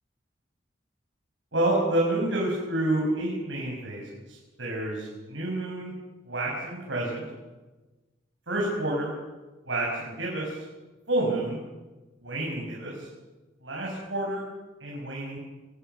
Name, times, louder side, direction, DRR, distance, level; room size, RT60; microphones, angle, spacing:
voice 1, 1.5-5.9 6.2-7.2 8.5-9.1 9.6-10.6 11.1-11.6 12.2-13.1 13.6-14.4 14.8-15.4, right 1 dB, 75° right, -3 dB, 6.2 m, -29 dB
24.0 x 22.0 x 6.8 m, 1.2 s
head